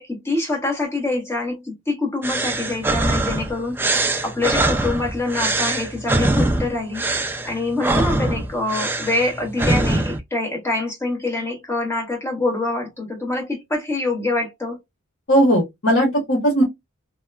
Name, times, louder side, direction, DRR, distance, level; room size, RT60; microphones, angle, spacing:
voice 1, 0.0-3.8 4.2-7.0 7.4-14.8, left 2 dB, 15° left, 1.1 m, -25 dB
sound 1, 2.2-10.2, right 2 dB, 10° right, 0.3 m, -23 dB
voice 2, 15.3-16.6, equal, 60° left, 1.0 m, -17 dB
2.8 x 2.1 x 2.3 m
head